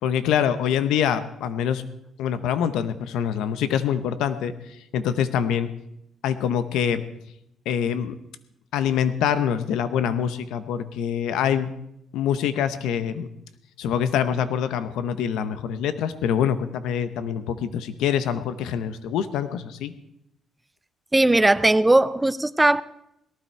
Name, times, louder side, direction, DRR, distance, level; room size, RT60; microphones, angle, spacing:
voice 1, 0.0-1.8 2.2-5.7 6.2-7.0 7.6-8.1 8.7-11.7 12.1-13.3 13.8-19.9, left 8 dB, 90° left, 0.8 m, -25 dB
voice 2, 21.1-22.8, right 2 dB, 15° right, 0.4 m, -18 dB
18.0 x 12.5 x 4.5 m
cardioid pair, 90°, 0 cm